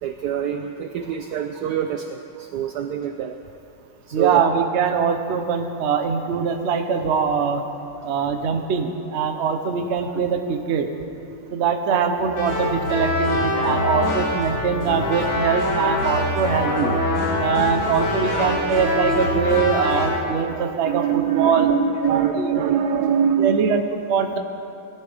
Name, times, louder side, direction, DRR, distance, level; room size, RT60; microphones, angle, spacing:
voice 1, 0.0-3.4 4.1-4.5 18.8-18.9 20.5-23.7, right 8 dB, 80° right, 6 dB, 0.9 m, -24 dB
voice 2, 4.1-7.6 8.0-10.9 11.5-17.0 17.4-21.7 22.1-22.5 23.4-23.8 24.1-24.4, right 6 dB, 55° right, 5 dB, 0.7 m, -22 dB
sound 1, 12.1-20.1, left 1 dB, 65° left, 3.8 m, -24 dB
18.5 x 13.0 x 3.5 m, 2.7 s
omnidirectional pair, 2.3 m